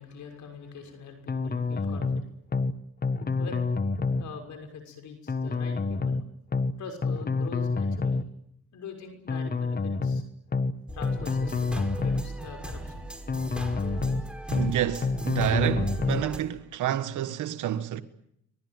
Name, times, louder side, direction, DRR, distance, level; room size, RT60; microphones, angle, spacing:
voice 1, 0.0-2.4 3.4-3.7 4.1-6.2 6.8-8.2 8.7-10.2 10.9-13.1, left 5 dB, 70° left, 6.3 m, -43 dB
sound 1, 1.3-2.2 2.5-2.7 3.0-4.3 5.3-6.2 6.5-6.7 7.0-8.3 9.3-10.2 10.5-10.7 11.0-12.3 13.3-14.2 14.5-14.7 15.0-16.3, left 4 dB, 30° left, 1.4 m, -28 dB
sound 2, 10.9-16.4, right 1 dB, 5° right, 5.4 m, -38 dB
voice 2, 14.5-18.0, right 11 dB, 80° right, 1.5 m, -28 dB
26.0 x 21.0 x 9.4 m
cardioid pair, 90°, 30 cm